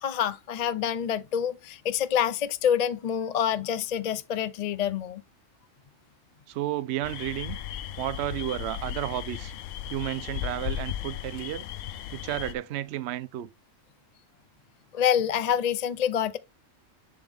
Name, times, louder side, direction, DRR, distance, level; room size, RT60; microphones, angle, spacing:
voice 1, 0.0-5.2 14.9-16.4, left 9 dB, 45° left, 0.5 m, -27 dB
voice 2, 6.5-7.6 8.0-9.5 9.9-11.6 12.1-13.5, right 13 dB, 65° right, 0.8 m, -32 dB
sound 1, 7.0-12.5, left 11 dB, 75° left, 0.9 m, -36 dB
10.5 x 3.8 x 3.5 m
omnidirectional pair, 1.4 m